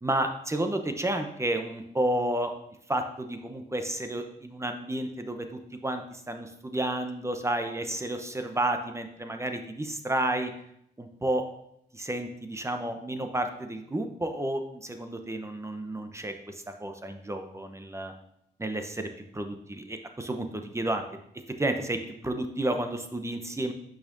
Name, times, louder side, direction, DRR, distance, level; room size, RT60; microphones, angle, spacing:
voice 1, 0.0-2.6 2.9-10.5 11.0-11.5 11.9-18.1 18.6-19.1 19.3-21.0 21.6-23.7, right 1 dB, 15° right, 6 dB, 0.8 m, -31 dB
6.5 x 5.7 x 2.6 m, 0.74 s
cardioid pair, 60°, 19 cm